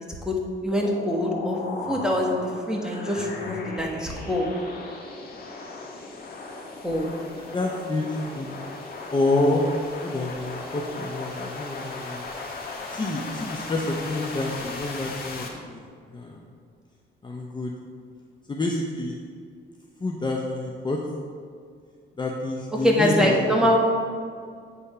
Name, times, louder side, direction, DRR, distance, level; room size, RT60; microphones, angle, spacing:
voice 1, 0.6-1.6 1.9-4.5 6.8-7.1 22.8-23.8, equal, 5° right, -1 dB, 1.4 m, -24 dB
sound 1, 0.7-15.5, left 3 dB, 50° left, 1.3 m, -37 dB
voice 2, 7.4-8.6 9.1-9.7 10.0-12.3 12.9-16.5 17.2-17.7 18.5-19.2 20.0-21.0 22.2-23.7, left 2 dB, 25° left, -1 dB, 0.7 m, -28 dB
8.4 x 3.5 x 5.5 m, 2.2 s
cardioid pair, 90°, 20 cm